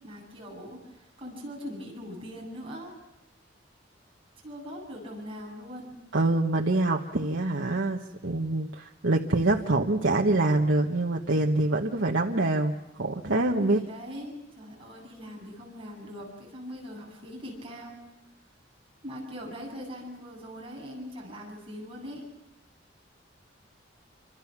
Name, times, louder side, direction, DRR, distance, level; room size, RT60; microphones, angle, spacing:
voice 1, 0.0-0.8 1.2-2.9 4.4-5.9 13.7-18.0 19.0-22.2, equal, 30° right, -1 dB, 8.0 m, -41 dB
voice 2, 6.1-12.7 13.0-13.8, right 2 dB, 85° right, 0 dB, 1.3 m, -25 dB
28.5 x 25.5 x 6.1 m, 0.91 s
head